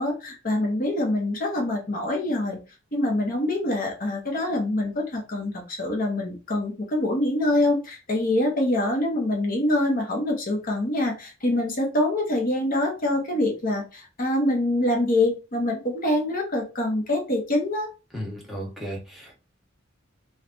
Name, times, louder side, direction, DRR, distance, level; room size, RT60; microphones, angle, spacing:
voice 1, 0.0-2.6 2.9-17.9, left 1 dB, 45° left, 1 dB, 0.9 m, -25 dB
voice 2, 18.1-19.4, equal, ahead, -2 dB, 1.0 m, -35 dB
3.2 x 2.2 x 2.5 m, 0.31 s
head